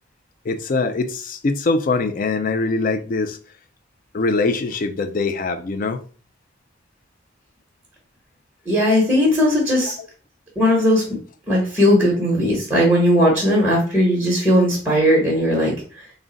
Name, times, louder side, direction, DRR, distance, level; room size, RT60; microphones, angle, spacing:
voice 1, 0.5-3.4 4.1-6.0 9.8-9.9, left 3 dB, 40° left, 0.3 m, -22 dB
voice 2, 8.7-10.0 10.6-11.2 11.5-15.7, equal, 5° right, 1.0 m, -17 dB
3.6 x 2.1 x 3.8 m
head